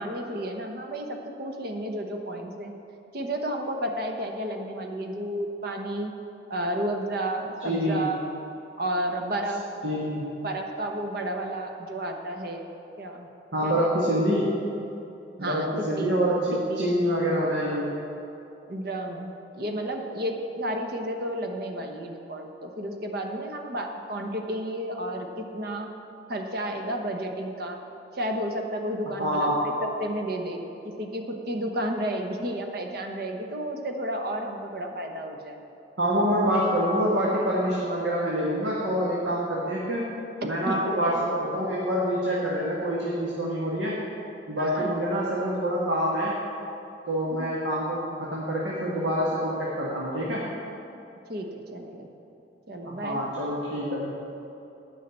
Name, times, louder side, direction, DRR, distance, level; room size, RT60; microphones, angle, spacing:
voice 1, 0.0-2.7 3.1-6.1 6.5-8.2 8.8-9.6 10.4-12.7 13.0-13.3 13.6-13.9 15.4-16.2 16.5-17.0 17.7-18.0 18.7-25.9 26.3-27.8 28.1-30.6 31.0-35.6 40.7-40.8 44.6-45.1 47.3-47.5 51.3-52.1 52.7-53.2, right 1 dB, 55° right, 3 dB, 1.1 m, -32 dB
voice 2, 7.6-8.1 9.8-10.3 13.5-14.6 15.4-18.0 29.2-29.6 36.0-40.1 40.4-44.0 44.5-46.4 47.1-50.4 52.8-54.1, equal, 80° right, -5 dB, 1.7 m, -26 dB
10.0 x 5.7 x 8.1 m, 2.8 s
head